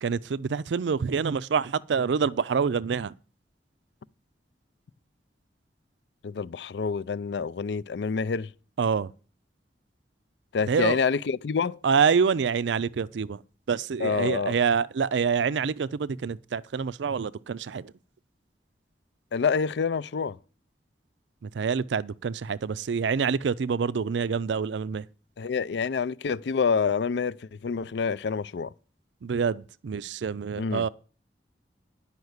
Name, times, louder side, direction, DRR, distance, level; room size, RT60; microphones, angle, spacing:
voice 1, 0.0-3.1 8.8-9.1 10.7-11.0 11.8-13.4 13.7-17.9 21.4-25.0 29.2-30.9, right 6 dB, 85° right, 0.4 m, -26 dB
voice 2, 6.2-8.5 10.5-11.8 14.0-14.6 19.3-20.4 25.4-27.4 27.6-28.7 30.6-30.8, left 5 dB, 75° left, 0.4 m, -27 dB
10.5 x 5.7 x 8.0 m
head